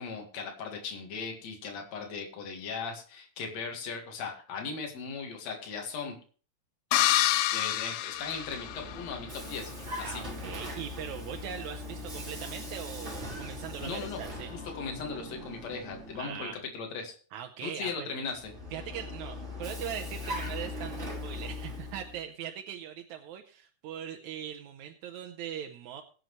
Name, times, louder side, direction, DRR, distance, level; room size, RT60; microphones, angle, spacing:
voice 1, 0.0-6.2 6.9-7.0 7.5-9.7 10.0-10.2 13.8-14.2 14.5-17.2 17.6-18.5, left 5 dB, 65° left, 2 dB, 3.1 m, -38 dB
sound 1, 6.9-9.1, left 14 dB, 85° left, 2.1 m, -27 dB
Vehicle, 8.1-16.6 18.3-22.2, left 2 dB, 25° right, 2.8 m, -40 dB
voice 2, 10.0-14.5 16.1-16.6 17.3-18.1 18.7-26.0, right 9 dB, 85° right, 5 dB, 2.2 m, -40 dB
21.0 x 7.7 x 3.1 m, 0.39 s
omnidirectional pair, 3.3 m